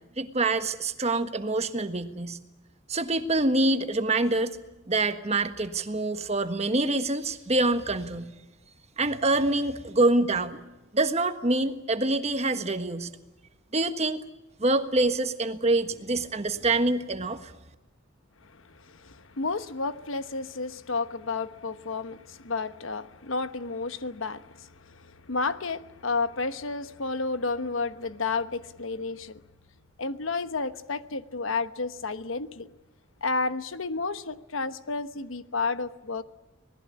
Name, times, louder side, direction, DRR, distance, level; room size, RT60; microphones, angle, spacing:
voice 1, 0.2-2.4 2.9-4.6 4.9-8.3 9.0-10.6 10.9-13.1 13.7-14.2 14.6-17.5, right 2 dB, 35° right, 9 dB, 1.4 m, -26 dB
voice 2, 18.5-29.4 30.0-32.7 33.2-36.2, left 3 dB, 80° left, 12 dB, 1.2 m, -31 dB
26.0 x 19.5 x 8.5 m, 1.0 s
head